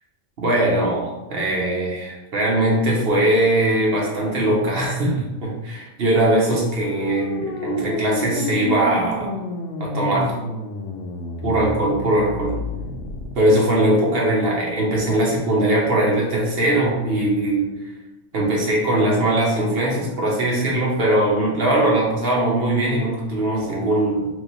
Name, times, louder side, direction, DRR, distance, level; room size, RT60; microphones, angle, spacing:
voice 1, 0.4-5.1 5.4-9.3 9.8-10.3 11.4-12.5 13.3-17.7 18.3-24.3, right 1 dB, 55° right, -3 dB, 1.2 m, -20 dB
sound 1, 6.2-13.3, left 3 dB, 85° left, 0.9 m, -30 dB
3.1 x 2.8 x 4.0 m, 1.0 s
omnidirectional pair, 1.2 m